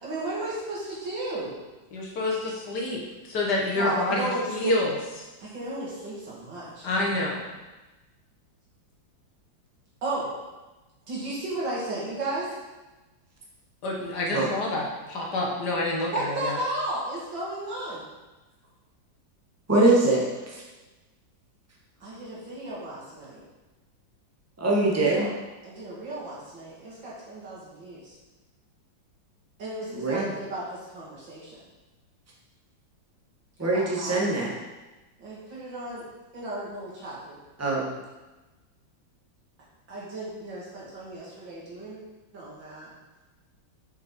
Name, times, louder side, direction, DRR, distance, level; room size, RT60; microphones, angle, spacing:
voice 1, 0.0-1.5 3.7-4.8 5.4-6.9 10.0-10.3 11.1-12.5 16.1-18.0 22.0-23.4 24.8-25.3 25.6-28.1 29.6-31.6 33.6-34.3 35.2-36.0 36.3-37.4 39.9-42.0 42.3-42.9, right 2 dB, 70° right, -7 dB, 3.0 m, -34 dB
voice 2, 1.9-4.9 6.8-7.4 13.8-16.6, left 2 dB, 60° left, -1 dB, 1.8 m, -28 dB
voice 3, 19.7-20.6 24.6-25.3 29.9-30.4 33.6-34.5 37.6-37.9, right 2 dB, 10° right, -4 dB, 1.2 m, -23 dB
6.6 x 5.9 x 4.5 m, 1.1 s
omnidirectional pair, 2.1 m